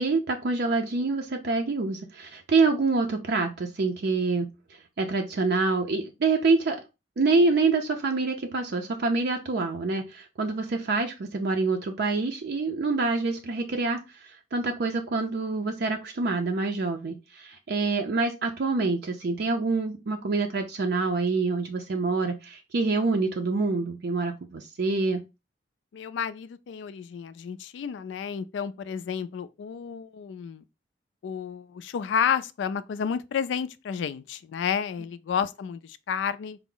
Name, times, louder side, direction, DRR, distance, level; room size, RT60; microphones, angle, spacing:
voice 1, 0.0-4.5 5.0-6.8 7.2-25.2, right 3 dB, 60° right, 0.4 m, -26 dB
voice 2, 25.9-30.6 31.2-36.6, left 7 dB, 75° left, 0.3 m, -31 dB
4.4 x 2.0 x 3.7 m
head